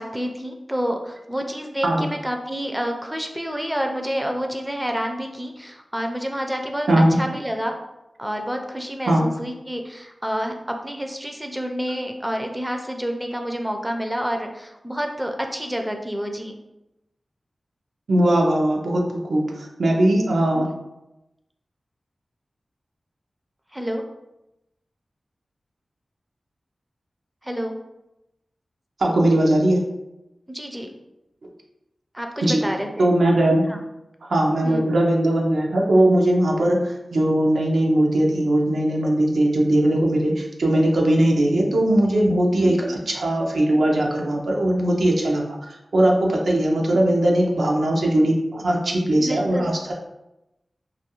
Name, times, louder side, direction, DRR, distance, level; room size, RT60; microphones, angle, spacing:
voice 1, 0.0-7.8 8.2-16.6 20.5-20.7 23.7-24.0 27.4-27.7 30.5-30.9 32.1-33.1 33.7-33.8 34.6-34.8 42.6-42.8 49.2-49.7, equal, 10° right, 3 dB, 0.3 m, -28 dB
voice 2, 6.9-7.2 9.1-9.3 18.1-20.7 29.0-29.8 32.4-32.6 33.0-33.6 34.3-45.4 45.9-49.9, right 1 dB, 90° right, -1 dB, 0.4 m, -19 dB
2.3 x 2.2 x 2.9 m, 0.92 s
cardioid pair, 50°, 0 cm